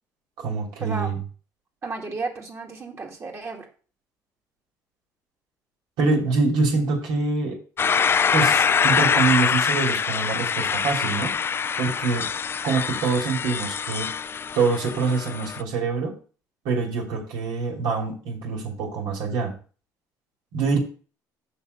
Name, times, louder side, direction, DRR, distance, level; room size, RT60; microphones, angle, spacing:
voice 1, 0.4-1.2 6.0-7.6 8.3-11.3 11.8-12.3 12.6-14.1 14.5-16.1 16.6-19.5 20.5-20.8, right 4 dB, 80° right, 0 dB, 3.3 m, -25 dB
voice 2, 1.8-3.7, right 3 dB, 40° right, 0 dB, 2.2 m, -33 dB
sound 1, 7.8-15.6, left 6 dB, 30° left, 0.3 m, -24 dB
6.9 x 5.3 x 6.7 m, 0.39 s
cardioid pair, 95°, 8 cm